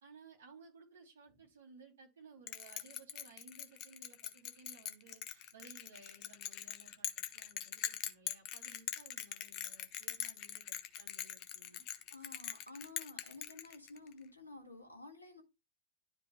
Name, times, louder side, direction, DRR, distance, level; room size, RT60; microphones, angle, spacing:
voice 1, 0.0-11.8, right 4 dB, 60° right, 3.0 m, -59 dB
Bell, 2.5-14.1, left 12 dB, 40° left, 0.9 m, -43 dB
voice 2, 12.1-15.4, left 3 dB, 80° left, 1.8 m, -52 dB
12.0 x 5.0 x 2.3 m
figure-of-eight pair, 90°, 0 cm